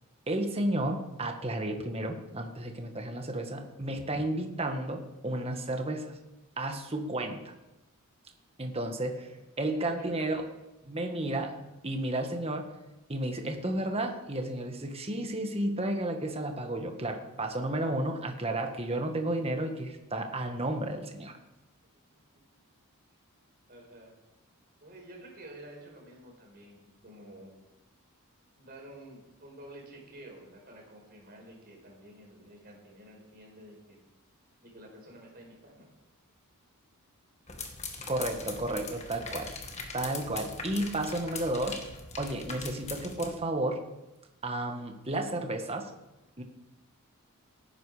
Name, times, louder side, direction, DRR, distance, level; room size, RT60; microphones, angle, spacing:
voice 1, 0.3-6.1 6.6-7.5 8.6-9.3 9.6-10.5 10.8-11.5 11.8-12.7 13.1-21.3 38.1-39.5 39.9-41.9 42.2-43.8 44.4-45.9 46.4-46.5, right 1 dB, 25° right, 5 dB, 1.5 m, -32 dB
voice 2, 8.9-10.5 23.7-24.1 24.8-27.5 28.6-34.1 34.6-35.9 38.4-39.4, right 1 dB, 40° right, -1 dB, 5.1 m, -50 dB
sound 1, 37.5-43.3, left 4 dB, 30° left, 1.6 m, -41 dB
17.0 x 10.0 x 5.0 m, 0.99 s
head